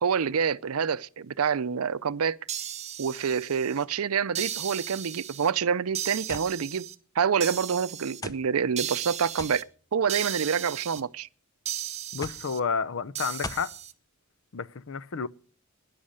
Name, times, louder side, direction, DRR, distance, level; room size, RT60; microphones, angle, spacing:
voice 1, 0.0-2.4 3.0-6.9 7.2-9.7 9.9-11.3, right 6 dB, 90° right, 0.5 m, -27 dB
sound 1, 2.5-3.8 4.3-5.5 5.9-6.9 7.4-8.2 8.8-9.6 10.1-11.0 11.7-12.6 13.1-13.9, right 10 dB, 30° right, 0.8 m, -36 dB
sound 2, 6.3-6.5 7.4-7.5 8.2-8.5 9.4-9.6 10.6-11.0 12.2-12.5 13.4-13.7, left 2 dB, 15° left, 0.7 m, -38 dB
voice 2, 12.1-13.7 14.5-15.3, left 5 dB, 65° left, 0.6 m, -30 dB
13.0 x 10.5 x 6.5 m
head